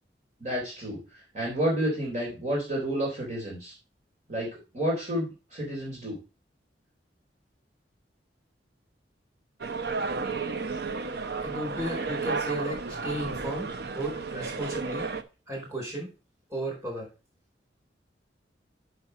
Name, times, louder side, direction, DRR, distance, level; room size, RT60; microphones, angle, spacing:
voice 1, 0.4-3.7 4.3-6.2, equal, 45° right, -4 dB, 3.3 m, -30 dB
sound 1, 9.6-15.2, right 4 dB, 60° right, 0.8 m, -33 dB
voice 2, 11.4-13.7 13.9-15.1 15.5-16.1 16.5-17.1, right 1 dB, 20° right, -1 dB, 4.3 m, -34 dB
6.7 x 6.1 x 5.4 m, 0.31 s
head